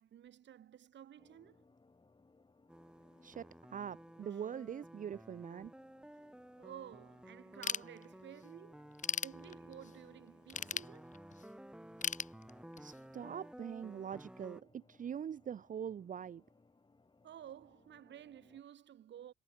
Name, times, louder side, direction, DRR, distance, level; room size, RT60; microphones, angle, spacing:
voice 1, 0.0-1.6 4.3-4.5 6.1-6.3 6.6-8.8 9.2-11.2 17.2-19.3, right 10 dB, 65° right, 3.3 m, -53 dB
sound 1, 1.2-18.6, left 3 dB, 25° left, 5.4 m, -68 dB
sound 2, 2.7-14.6, right 1 dB, 5° right, 1.0 m, -54 dB
voice 2, 3.2-5.7 12.8-16.4, right 8 dB, 40° right, 0.6 m, -43 dB
Ratchet pawl / Tools, 7.6-8.4 8.8-9.9 10.5-11.5 12.0-13.0, left 7 dB, 40° left, 0.9 m, -38 dB
cardioid pair, 90°, 20 cm